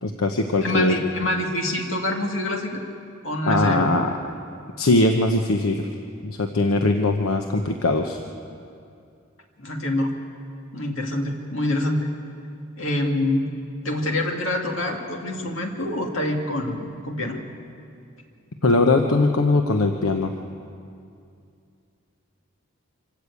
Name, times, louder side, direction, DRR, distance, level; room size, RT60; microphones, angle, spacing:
voice 1, 0.0-0.9 3.5-4.1 4.8-5.9 6.2-8.2 18.6-20.3, left 2 dB, 80° left, 4 dB, 1.0 m, -21 dB
voice 2, 0.6-2.8 3.2-3.9 9.6-10.2 10.7-12.1 12.8-13.5 13.8-17.4, left 1 dB, 60° left, 1 dB, 2.4 m, -26 dB
25.5 x 13.5 x 8.4 m, 2.4 s
head